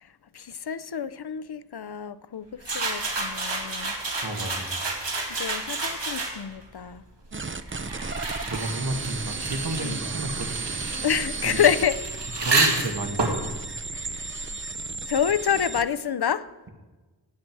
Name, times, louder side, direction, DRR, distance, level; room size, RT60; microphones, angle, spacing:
voice 1, 0.3-3.9 5.3-7.0 9.8-10.0 11.0-12.0 13.9-14.2 15.1-16.5, left 8 dB, 65° left, 0.7 m, -27 dB
sound 1, 2.6-6.6 7.4-14.8, right 3 dB, 80° right, 2.2 m, -30 dB
voice 2, 4.2-4.7 5.3-5.4 6.8-6.9 8.4-10.8 11.4-11.6 12.4-13.4, right 1 dB, 55° right, 2.0 m, -32 dB
sound 2, 7.3-15.9, right 4 dB, 30° right, 0.6 m, -34 dB
18.0 x 7.8 x 4.7 m
wide cardioid pair, 60°, 42 cm